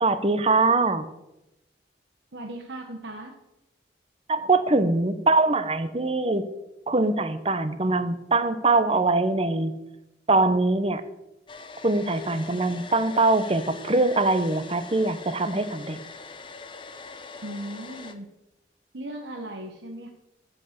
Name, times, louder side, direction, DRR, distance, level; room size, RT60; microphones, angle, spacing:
voice 1, 0.0-1.1 4.3-6.5 6.9-9.7 10.3-11.0 11.8-16.0, right 3 dB, 35° right, 11 dB, 0.8 m, -23 dB
voice 2, 2.3-3.3 17.4-18.3 18.9-20.1, right 1 dB, 80° right, 3 dB, 1.1 m, -37 dB
Domestic sounds home sounds, 11.5-18.1, left 4 dB, 30° left, 0.8 m, -42 dB
13.5 x 5.5 x 6.6 m, 0.93 s
head